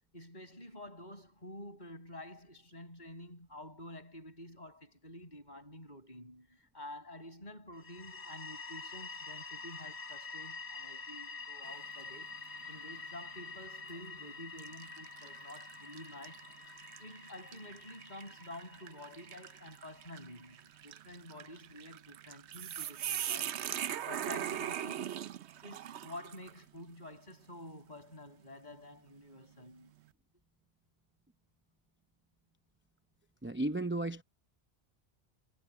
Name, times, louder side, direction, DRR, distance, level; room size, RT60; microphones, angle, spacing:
voice 1, 0.1-12.3 12.7-16.5 17.0-25.1 25.6-29.9, left 1 dB, 40° left, 7.8 m, -50 dB
sound 1, 7.7-20.4, left 4 dB, 75° left, 2.2 m, -47 dB
sound 2, 11.7-12.1 12.6-12.8 13.7-14.0 14.6-26.6, right 10 dB, 85° right, 1.0 m, -41 dB
voice 2, 33.4-34.2, right 2 dB, 15° right, 0.7 m, -34 dB
omnidirectional pair, 1.1 m